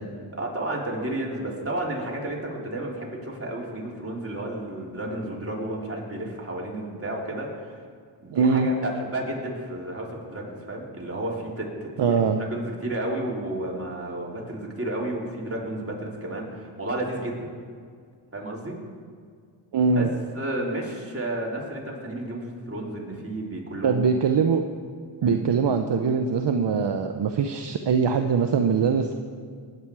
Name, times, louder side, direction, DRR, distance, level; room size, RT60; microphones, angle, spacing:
voice 1, 0.3-7.8 8.2-12.3 12.5-17.5 18.3-18.8 19.9-20.1 20.3-24.0 25.2-25.4, right 1 dB, 25° right, -3 dB, 3.7 m, -32 dB
voice 2, 8.3-8.7 12.0-12.4 19.7-20.1 23.8-24.6 25.2-29.1, right 5 dB, 55° right, 6 dB, 0.9 m, -22 dB
20.0 x 9.0 x 4.8 m, 2.1 s
cardioid pair, 60°, 50 cm